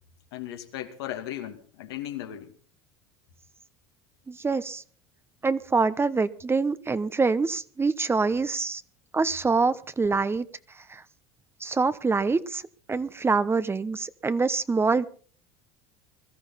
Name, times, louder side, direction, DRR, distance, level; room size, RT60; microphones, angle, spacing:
voice 1, 0.3-2.6, left 12 dB, 80° left, 2.4 m, -36 dB
voice 2, 4.3-4.8 5.4-8.8 9.1-10.5 10.9-11.0 11.6-12.6 12.9-15.1, right 4 dB, 20° right, 1.0 m, -25 dB
21.5 x 14.0 x 4.2 m
hypercardioid pair, 90°, 13 cm